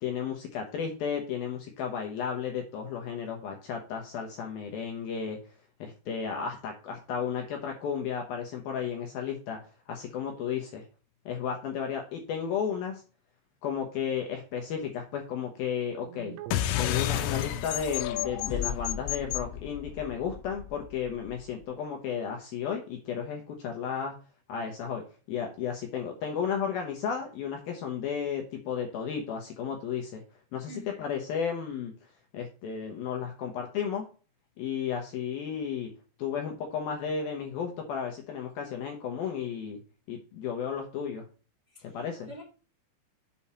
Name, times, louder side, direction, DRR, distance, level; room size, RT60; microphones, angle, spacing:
voice 1, 0.0-5.4 5.8-9.6 9.9-10.8 11.3-13.0 13.6-16.4 16.8-24.2 24.5-30.2 30.5-31.9 32.3-34.1 34.6-35.9 36.2-39.8 40.1-41.2 41.8-42.3, left 7 dB, 75° left, 2 dB, 2.3 m, -33 dB
sound 1, 16.0-20.3, right 13 dB, 90° right, 3.4 m, -47 dB
sound 2, 16.5-21.4, left 12 dB, 90° left, 3.2 m, -31 dB
voice 2, 30.7-31.0 41.7-42.4, equal, 60° right, -2 dB, 1.0 m, -47 dB
7.4 x 5.5 x 4.3 m, 0.36 s
omnidirectional pair, 5.6 m